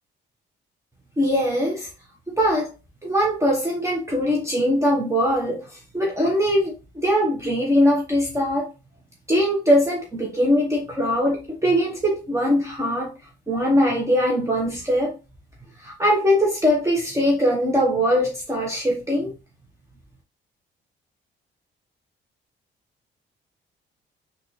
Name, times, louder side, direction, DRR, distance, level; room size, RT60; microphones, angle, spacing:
voice 1, 1.2-1.9 2.3-2.7 3.0-8.7 9.3-13.1 13.5-15.1 15.8-19.3, equal, 15° right, 1.0 m, -21 dB
3.8 x 2.6 x 3.1 m
cardioid pair, 90°, 20 cm